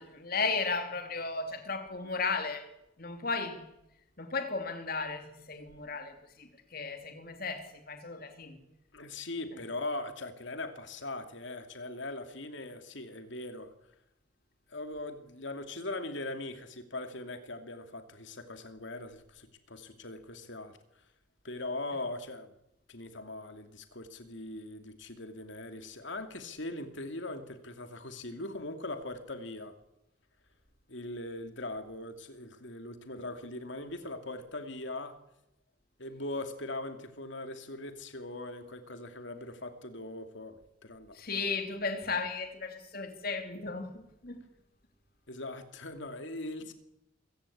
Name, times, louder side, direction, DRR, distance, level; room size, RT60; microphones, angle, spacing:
voice 1, 0.0-2.7 3.0-3.7 4.2-8.6 9.5-9.6 41.1-44.4, left 4 dB, 50° left, 3.0 m, -35 dB
voice 2, 8.9-13.7 14.7-21.0 21.4-22.5 22.9-29.8 30.9-35.2 36.0-41.5 45.3-46.7, left 2 dB, 65° left, 2.6 m, -40 dB
26.5 x 16.5 x 8.6 m
head